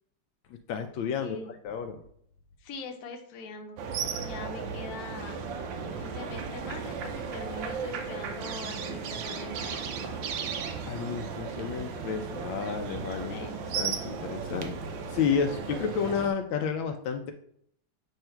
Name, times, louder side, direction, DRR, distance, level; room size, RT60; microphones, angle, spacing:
voice 1, 0.5-2.0 10.9-13.4 13.7-14.8 15.1-17.3, left 6 dB, 80° left, 6 dB, 1.3 m, -31 dB
voice 2, 1.2-1.5 2.6-3.8 4.2-5.4 6.0-10.1 13.3-13.6, left 3 dB, 60° left, 4 dB, 1.2 m, -42 dB
sound 1, 3.8-16.3, right 5 dB, 75° right, 1.4 m, -35 dB
7.8 x 2.8 x 4.4 m, 0.66 s
omnidirectional pair, 2.2 m